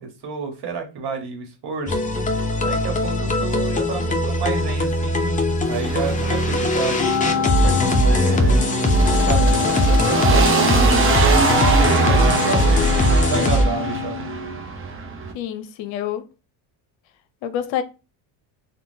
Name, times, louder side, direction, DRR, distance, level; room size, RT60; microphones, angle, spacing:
voice 1, 0.0-2.0 2.6-8.6 9.1-10.7 11.0-11.5 12.0-14.3, right 5 dB, 50° right, 1.2 m, -30 dB
sound 1, 1.9-13.6, equal, 15° left, 0.4 m, -20 dB
sound 2, 5.7-15.3, right 4 dB, 25° right, 0.7 m, -24 dB
Wind instrument woodwind instrument, 7.0-14.6, left 7 dB, 50° left, 1.2 m, -26 dB
voice 2, 15.3-16.3 17.4-17.8, left 10 dB, 65° left, 0.6 m, -27 dB
3.6 x 2.3 x 2.7 m
cardioid pair, 105°, 49 cm